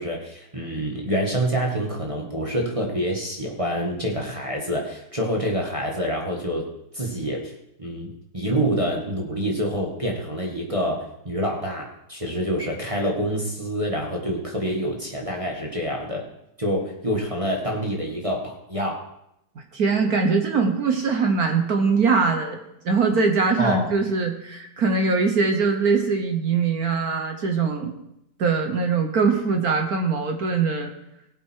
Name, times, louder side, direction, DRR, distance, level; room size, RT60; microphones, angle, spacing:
voice 1, 0.0-6.6 6.9-7.5 7.8-16.2 16.6-19.0 23.6-23.8, equal, 15° right, -1 dB, 1.6 m, -27 dB
voice 2, 19.7-22.6 22.8-27.9 28.4-30.9, right 4 dB, 50° right, 4 dB, 1.4 m, -22 dB
18.5 x 8.1 x 4.6 m, 0.82 s
omnidirectional pair, 2.3 m